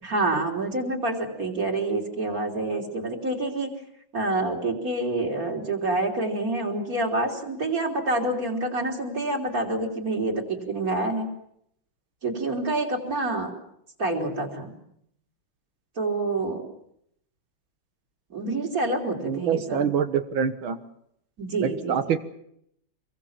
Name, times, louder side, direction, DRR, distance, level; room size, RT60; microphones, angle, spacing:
voice 1, 0.0-3.7 4.1-11.3 12.2-13.5 14.0-14.8 16.0-16.7 18.3-19.9 21.4-22.0, right 2 dB, 45° right, 1 dB, 4.2 m, -27 dB
voice 2, 19.2-20.8 21.6-22.2, right 7 dB, 90° right, 9 dB, 2.2 m, -25 dB
26.5 x 22.5 x 7.4 m, 0.73 s
omnidirectional pair, 2.1 m